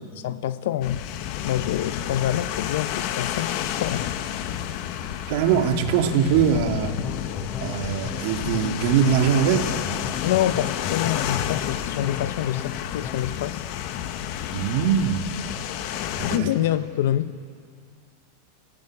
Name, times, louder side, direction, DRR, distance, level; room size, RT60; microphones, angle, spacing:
voice 1, 0.1-1.0 1.4-4.1 10.2-13.6 16.2-17.4, left 12 dB, 70° left, 1.0 m, -26 dB
sound 1, 0.8-16.4, left 10 dB, 50° left, 1.4 m, -30 dB
voice 2, 5.3-7.0 7.6-9.7 14.5-15.3 16.2-16.5, right 8 dB, 60° right, 2.2 m, -22 dB
sound 2, 5.5-13.4, left 7 dB, 25° left, 1.1 m, -36 dB
29.0 x 17.0 x 10.0 m
supercardioid pair, 145°, 0 cm